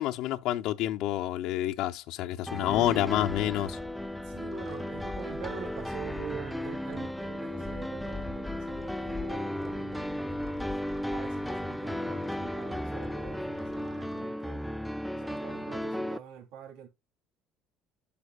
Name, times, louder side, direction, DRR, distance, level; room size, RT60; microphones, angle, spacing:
voice 1, 0.0-3.8, left 14 dB, 70° left, 0.6 m, -28 dB
sound 1, 2.5-16.2, left 1 dB, ahead, 0.5 m, -35 dB
sound 2, 2.7-14.2, left 3 dB, 20° left, 1.9 m, -45 dB
voice 2, 4.2-10.8 11.1-14.8 15.1-16.9, right 8 dB, 75° right, 2.9 m, -45 dB
8.2 x 6.7 x 2.3 m
cardioid pair, 120°, 0 cm